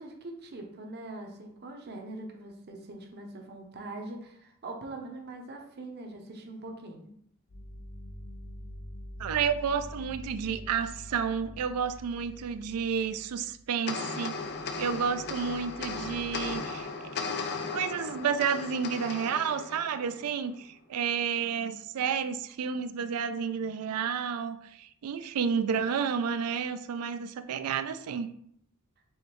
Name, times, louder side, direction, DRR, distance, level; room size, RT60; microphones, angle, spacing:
voice 1, 0.0-7.1, right 2 dB, 50° right, 3 dB, 0.7 m, -42 dB
sound 1, 7.5-13.8 14.4-16.6, equal, 65° left, 0.8 m, -46 dB
voice 2, 9.2-14.4 14.8-16.9 17.7-28.3, right 6 dB, 85° right, 11 dB, 0.4 m, -31 dB
sound 2, 13.9-20.5, left 4 dB, 50° left, 0.5 m, -37 dB
4.8 x 3.1 x 3.0 m, 0.69 s
head